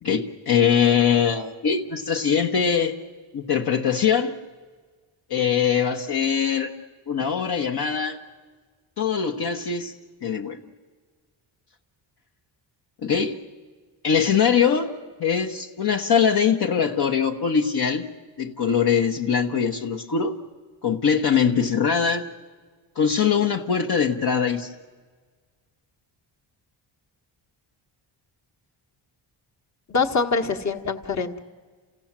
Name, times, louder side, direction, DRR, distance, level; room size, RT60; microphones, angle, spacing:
voice 1, 0.0-3.0 3.3-4.3 5.3-6.7 7.1-8.2 9.0-9.9 10.2-10.6 13.0-13.4 14.0-14.9 15.2-18.1 18.4-20.4 20.8-22.3 23.0-24.7, left 7 dB, 55° left, 2 dB, 1.1 m, -22 dB
voice 2, 29.9-31.4, left 4 dB, 35° left, 5 dB, 1.4 m, -24 dB
28.5 x 16.5 x 7.4 m, 1.5 s
wide cardioid pair, 125°, 47 cm